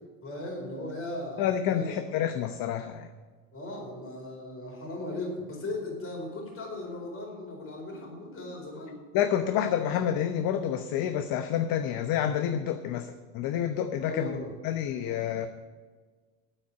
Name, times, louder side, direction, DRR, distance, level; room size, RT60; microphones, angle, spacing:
voice 1, 0.2-1.9 3.5-9.0 14.0-14.6, left 2 dB, 30° left, 0 dB, 4.5 m, -37 dB
voice 2, 1.4-3.1 9.1-15.5, left 9 dB, 55° left, 8 dB, 0.9 m, -29 dB
9.0 x 8.5 x 8.4 m, 1.4 s
supercardioid pair, 115°, 42 cm